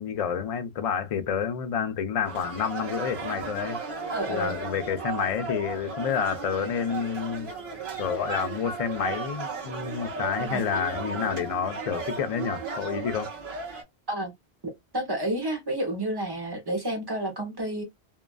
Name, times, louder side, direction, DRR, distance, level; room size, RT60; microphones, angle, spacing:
voice 1, 0.0-3.8 4.3-7.5 8.0-13.3, left 7 dB, 50° left, 0.4 m, -29 dB
sound 1, 2.2-13.8, right 4 dB, 55° right, 1.2 m, -35 dB
voice 2, 4.1-4.6 10.4-10.7 14.1-14.3 14.6-17.8, right 1 dB, 25° right, 0.8 m, -30 dB
2.8 x 2.4 x 2.3 m
omnidirectional pair, 1.1 m